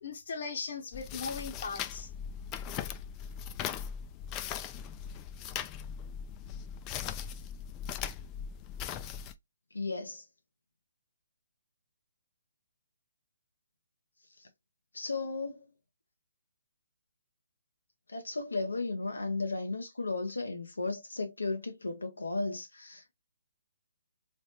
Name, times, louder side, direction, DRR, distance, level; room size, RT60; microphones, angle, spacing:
voice 1, 0.0-2.1, left 5 dB, 55° left, 0.9 m, -38 dB
sound 1, 0.9-9.3, left 8 dB, 20° left, 0.3 m, -39 dB
voice 2, 9.7-10.2 14.4-14.5 14.9-15.6 18.1-23.1, left 3 dB, 85° left, 0.6 m, -35 dB
3.2 x 3.0 x 2.8 m
figure-of-eight pair, 140°, 0 cm